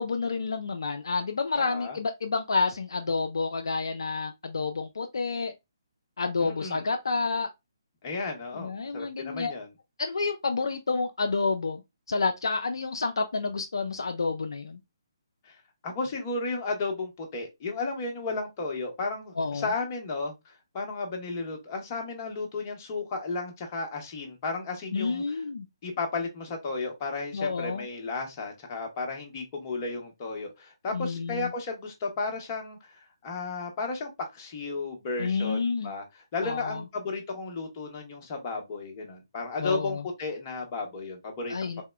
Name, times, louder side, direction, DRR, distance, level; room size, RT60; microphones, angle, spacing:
voice 1, 0.0-5.5 6.2-7.5 8.5-9.5 10.0-11.8 12.1-14.8 19.4-19.7 24.9-25.7 27.3-27.9 30.9-31.5 35.2-35.9 36.4-36.8 39.6-40.0 41.5-41.8, left 4 dB, 70° left, 0.3 m, -29 dB
voice 2, 1.5-2.0 6.4-6.8 8.0-9.7 15.5-15.6 15.8-25.2 25.8-32.8 33.2-41.8, left 3 dB, 30° left, 0.8 m, -34 dB
3.5 x 2.0 x 2.2 m
figure-of-eight pair, 140°, 2 cm